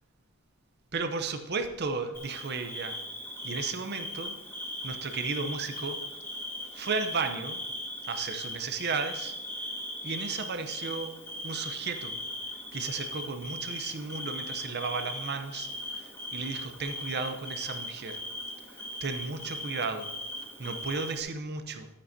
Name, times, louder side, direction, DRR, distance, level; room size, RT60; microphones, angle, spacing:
voice 1, 0.9-3.0 3.4-4.3 4.8-6.0 6.7-7.6 8.1-9.3 10.0-11.1 11.4-12.2 12.7-18.2 19.0-20.1 20.6-21.9, right 4 dB, 45° right, 7 dB, 0.8 m, -34 dB
Bird / Cricket, 2.1-21.2, left 1 dB, 10° left, 1.8 m, -39 dB
12.5 x 8.6 x 2.8 m, 0.99 s
head